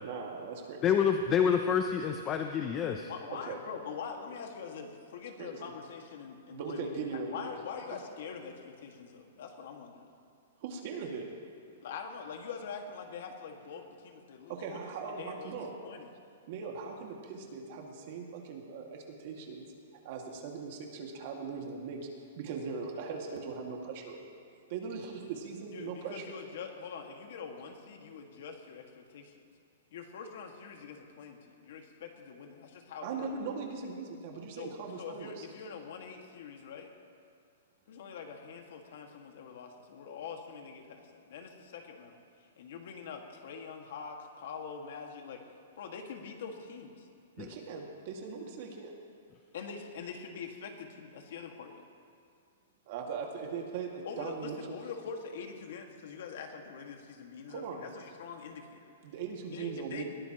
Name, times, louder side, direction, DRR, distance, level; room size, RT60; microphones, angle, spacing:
voice 1, 0.0-0.9 3.4-3.6 5.4-5.7 6.5-7.6 7.9-8.0 10.6-11.3 14.5-15.7 16.5-19.7 20.0-22.1 22.4-24.4 24.7-26.5 33.0-35.5 47.4-48.9 52.9-54.8 57.5-57.9 59.0-60.0, right 5 dB, 40° right, 0 dB, 2.1 m, -40 dB
voice 2, 0.8-3.1 47.4-47.5, left 7 dB, 20° left, 5 dB, 0.6 m, -28 dB
voice 3, 3.1-10.1 11.8-14.7 15.0-15.5 15.8-16.1 25.7-29.3 29.9-33.3 34.6-34.7 35.0-36.9 37.9-42.2 42.6-45.4 45.8-47.1 49.5-51.8 54.1-58.8 59.5-60.0, left 6 dB, 55° left, 3 dB, 2.0 m, -44 dB
21.0 x 19.0 x 3.1 m, 2.4 s
hypercardioid pair, 170°, 0 cm